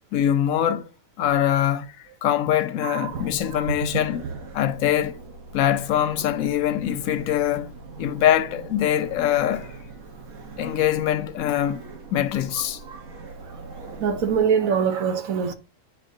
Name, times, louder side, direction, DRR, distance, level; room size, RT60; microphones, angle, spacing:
voice 1, 0.1-0.9 1.2-1.9 2.2-4.2 4.5-5.2 5.5-9.7 10.6-11.8 12.1-12.8, left 11 dB, 85° left, 1.1 m, -23 dB
voice 2, 2.8-3.7 12.5-13.0 14.0-15.5, right 7 dB, 85° right, 1.3 m, -25 dB
sound 1, 3.1-14.4, right 3 dB, 70° right, 1.5 m, -41 dB
8.4 x 4.1 x 2.7 m
omnidirectional pair, 1.4 m